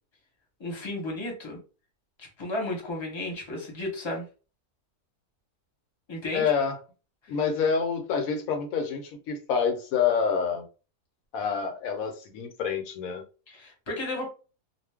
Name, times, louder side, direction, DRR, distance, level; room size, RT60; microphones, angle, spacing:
voice 1, 0.6-1.6 2.2-4.3 6.1-6.5 13.5-14.3, left 2 dB, 25° left, 0.8 m, -33 dB
voice 2, 6.3-6.8 7.3-10.7 11.3-13.2, left 6 dB, 70° left, 1.0 m, -27 dB
2.4 x 2.1 x 3.4 m
omnidirectional pair, 1.6 m